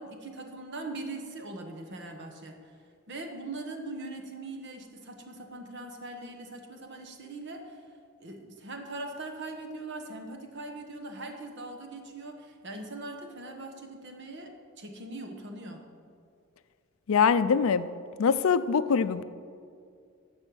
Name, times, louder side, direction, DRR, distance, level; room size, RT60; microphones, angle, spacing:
voice 1, 0.0-2.7 3.1-7.9 8.2-15.8, right 2 dB, 55° right, 4 dB, 1.2 m, -41 dB
voice 2, 17.1-17.9 18.2-19.2, left 6 dB, 70° left, 14 dB, 0.4 m, -23 dB
10.5 x 6.3 x 6.3 m, 2.3 s
head